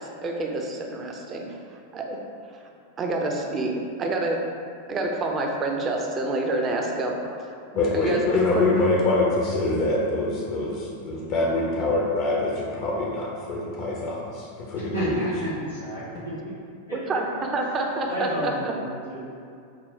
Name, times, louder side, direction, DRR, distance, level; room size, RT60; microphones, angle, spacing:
voice 1, 0.0-1.4 1.9-2.2 2.5-2.7 3.0-4.4 4.9-7.5 7.9-8.6 16.9-17.2 17.5-18.7, right 2 dB, 25° right, 1 dB, 0.4 m, -28 dB
voice 2, 7.8-15.2, left 2 dB, 45° left, -4 dB, 0.5 m, -24 dB
voice 3, 14.7-16.3 16.9-17.2 18.1-19.3, right 1 dB, 75° left, -11 dB, 1.3 m, -31 dB
3.9 x 2.1 x 4.0 m, 2.4 s
figure-of-eight pair, 90°, 0 cm